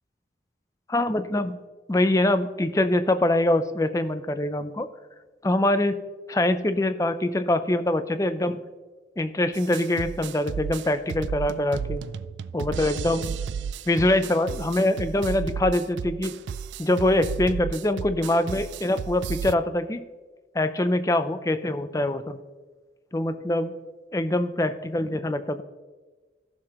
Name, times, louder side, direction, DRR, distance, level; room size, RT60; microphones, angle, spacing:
voice 1, 0.9-1.6 1.9-4.9 5.4-6.0 6.3-8.6 9.2-12.0 12.5-13.4 13.9-16.3 16.8-20.0 20.5-22.4 23.1-23.8 24.1-25.6, left 1 dB, 20° left, 10 dB, 0.4 m, -24 dB
sound 1, 9.5-19.5, right 6 dB, 90° right, 0.3 m, -33 dB
15.0 x 6.6 x 2.9 m, 1.3 s
head